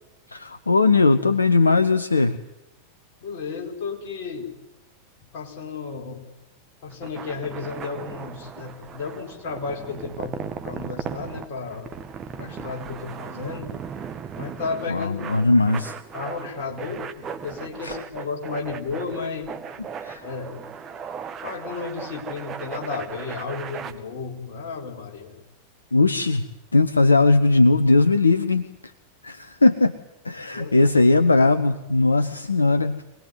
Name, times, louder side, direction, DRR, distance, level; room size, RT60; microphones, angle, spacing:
voice 1, 0.3-2.4 14.9-15.9 17.8-18.0 20.0-20.3 25.9-26.4 26.7-28.7 29.2-29.9 30.2-33.0, left 3 dB, 80° left, 11 dB, 0.8 m, -19 dB
voice 2, 3.2-4.5 5.3-6.2 6.8-11.9 12.3-13.7 14.4-15.3 16.1-19.5 20.2-20.6 21.4-25.4 30.5-30.7, left 4 dB, 50° left, 2 dB, 4.8 m, -33 dB
sound 1, 6.9-23.9, right 7 dB, 25° right, 1.8 m, -37 dB
24.5 x 19.0 x 9.7 m, 0.96 s
figure-of-eight pair, 90°, 0 cm